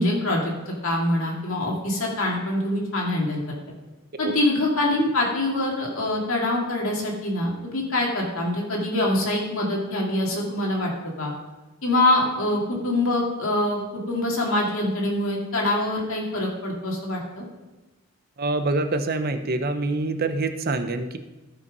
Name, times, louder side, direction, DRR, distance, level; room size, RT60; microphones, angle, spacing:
voice 1, 0.0-3.4 4.2-10.9 11.2-11.3 11.8-13.8 14.1-17.4, left 1 dB, 65° left, -2 dB, 2.5 m, -24 dB
voice 2, 18.4-21.2, right 2 dB, 45° right, 9 dB, 0.7 m, -25 dB
13.5 x 5.7 x 5.3 m, 1.1 s
head